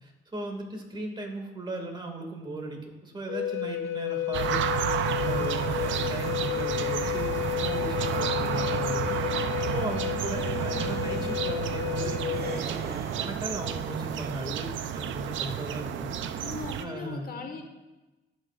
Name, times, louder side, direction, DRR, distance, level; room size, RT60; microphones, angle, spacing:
voice 1, 0.0-4.7 5.1-9.2 9.7-16.5 16.8-17.5, right 1 dB, 20° right, 2 dB, 2.1 m, -37 dB
Wind instrument woodwind instrument, 3.3-12.6, left 13 dB, 85° left, 0.7 m, -31 dB
sound 1, 4.3-16.8, right 9 dB, 75° right, 0.6 m, -31 dB
sound 2, 5.0-9.5 10.1-11.4 12.3-13.3, right 4 dB, 55° right, 1.4 m, -42 dB
voice 2, 9.6-9.9 16.3-17.6, left 4 dB, 50° left, 4 dB, 1.5 m, -40 dB
18.5 x 6.2 x 2.5 m, 1.1 s
cardioid pair, 90°, 20 cm